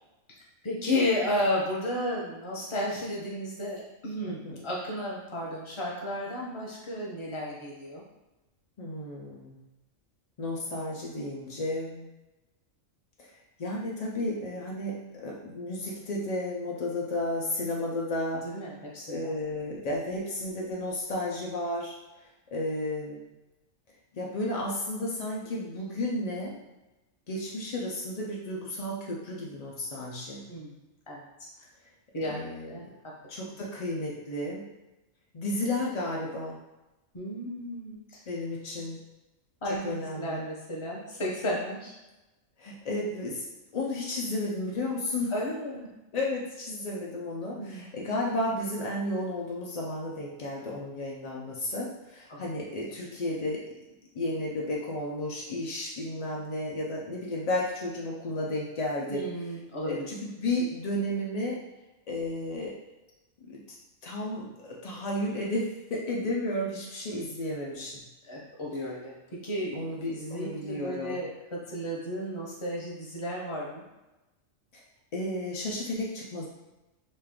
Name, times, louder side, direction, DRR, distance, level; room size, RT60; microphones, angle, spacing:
voice 1, 0.6-8.0 18.3-19.3 30.5-30.8 31.1-31.5 32.1-32.9 37.1-38.2 39.6-41.9 45.3-45.9 47.6-47.9 52.3-52.5 59.1-60.1 68.2-69.7 70.1-73.8, left 1 dB, 30° left, -4 dB, 0.6 m, -33 dB
voice 2, 4.3-4.6 8.8-9.6 10.4-12.1 13.2-13.3 13.6-18.4 19.1-22.0 22.5-23.2 24.1-26.5 27.3-30.5 32.2-32.8 33.3-34.6 35.3-36.6 38.3-39.0 39.6-40.4 42.6-43.4 43.7-45.3 46.1-53.6 54.1-59.2 59.9-61.6 62.1-62.7 63.5-63.6 64.0-68.0 69.7-71.2 75.1-76.5, left 1 dB, 80° left, -3 dB, 0.3 m, -33 dB
3.1 x 2.3 x 3.4 m, 1.0 s
omnidirectional pair, 1.4 m